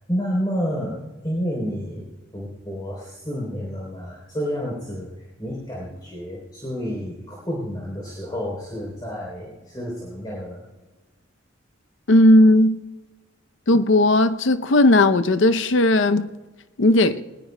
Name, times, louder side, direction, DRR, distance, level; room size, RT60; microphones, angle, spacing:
voice 1, 0.1-1.0 1.2-2.1 2.3-5.1 5.4-10.6, equal, 20° left, 3.5 m, -29 dB
voice 2, 12.1-12.8 13.7-16.3 16.8-17.2, left 1 dB, 70° left, 0.6 m, -16 dB
21.0 x 20.5 x 2.2 m
head